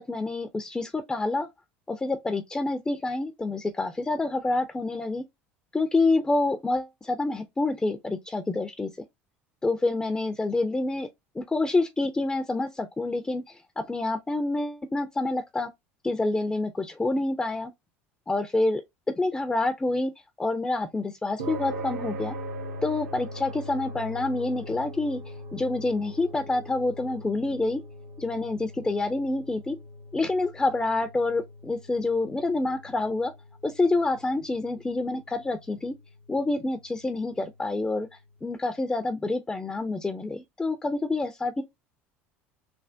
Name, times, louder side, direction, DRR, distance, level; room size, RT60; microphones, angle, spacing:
voice 1, 0.0-1.5 1.9-5.2 5.7-8.9 9.6-11.1 11.4-13.6 13.9-15.7 16.0-17.7 18.3-18.8 19.2-20.1 20.4-22.4 22.8-27.8 28.2-29.8 30.1-33.3 33.6-35.9 36.3-38.1 38.4-41.6, left 2 dB, 15° left, 0.4 m, -27 dB
sound 1, 21.4-37.9, equal, 80° right, 0.9 m, -41 dB
3.3 x 2.1 x 2.5 m
hypercardioid pair, 75°, 7 cm